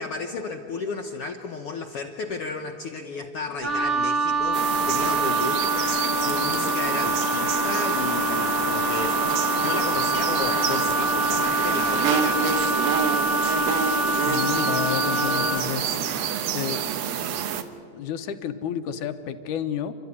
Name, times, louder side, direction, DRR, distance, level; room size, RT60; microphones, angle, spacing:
voice 1, 0.0-5.7 6.2-9.2 9.6-12.7, left 4 dB, 65° left, 3 dB, 1.6 m, -33 dB
Wind instrument woodwind instrument, 3.6-15.7, right 1 dB, 50° right, 0.8 m, -25 dB
sound 1, 4.5-17.6, right 8 dB, 65° right, 2.0 m, -27 dB
voice 2, 14.3-15.9 16.5-16.8 17.9-19.9, left 9 dB, 85° left, 9 dB, 2.5 m, -30 dB
30.0 x 12.5 x 9.8 m, 2.3 s
omnidirectional pair, 3.5 m